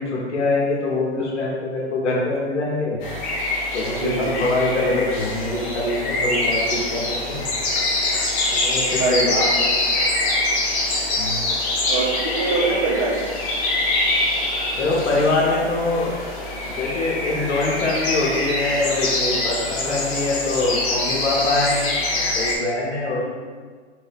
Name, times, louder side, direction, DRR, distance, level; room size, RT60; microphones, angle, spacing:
voice 1, 0.0-3.0 3.7-7.4 8.5-9.2 11.2-11.5 14.8-16.1 16.6-23.2, left 2 dB, 80° left, -4 dB, 1.0 m, -24 dB
sound 1, 3.0-22.5, left 2 dB, 25° left, 0.7 m, -24 dB
voice 2, 4.0-4.3 9.0-10.0 10.3-10.4 11.9-13.3 23.2-23.3, right 3 dB, 30° right, -8 dB, 0.6 m, -24 dB
3.1 x 2.7 x 3.4 m, 1.5 s
hypercardioid pair, 130°, 35 cm